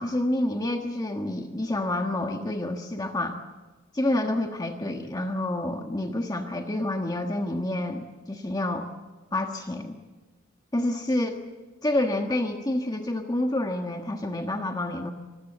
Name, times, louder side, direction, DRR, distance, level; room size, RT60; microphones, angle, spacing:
voice 1, 0.0-3.4 3.9-8.9 9.3-10.0 10.7-11.4 11.8-15.1, left 1 dB, 20° left, 4 dB, 1.4 m, -28 dB
26.0 x 20.0 x 8.0 m, 1.2 s
head